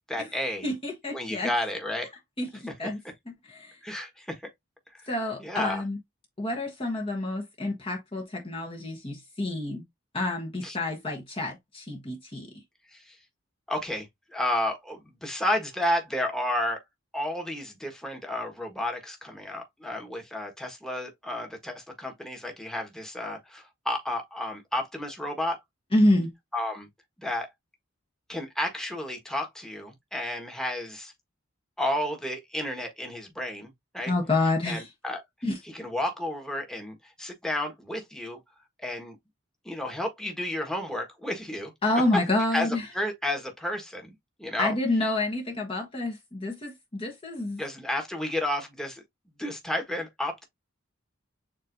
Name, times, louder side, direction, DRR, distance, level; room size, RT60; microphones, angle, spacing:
voice 1, 0.1-0.7 1.1-2.1 2.7-2.8 3.8-4.4 5.4-5.8 10.6-10.8 12.9-13.2 13.7-14.1 14.3-16.8 17.1-25.6 26.5-26.9 27.2-27.5 28.3-31.1 31.8-34.1 34.6-35.2 35.7-38.4 38.8-39.2 39.6-41.7 42.5-42.7 42.9-44.1 44.4-44.7 47.6-49.0 49.4-50.5, left 1 dB, 5° left, 1.3 m, -31 dB
voice 2, 0.6-1.5 2.4-3.0 3.5-3.8 5.1-6.0 6.4-9.8 10.1-12.5 25.9-26.3 34.1-34.9 35.4-35.6 41.8-42.9 44.6-47.6, left 2 dB, 25° left, 1.1 m, -28 dB
7.3 x 2.7 x 2.6 m
head